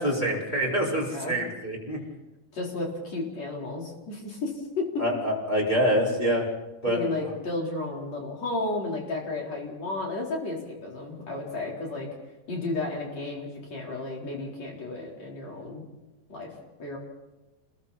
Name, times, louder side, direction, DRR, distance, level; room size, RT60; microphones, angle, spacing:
voice 1, 0.0-2.0 5.0-6.5 6.8-7.0, equal, 10° left, -4 dB, 4.6 m, -26 dB
voice 2, 2.5-4.8 6.8-12.1 12.5-15.9 16.3-16.5 16.8-17.0, left 2 dB, 40° left, -2 dB, 5.1 m, -33 dB
29.5 x 22.0 x 4.2 m, 1.1 s
omnidirectional pair, 4.9 m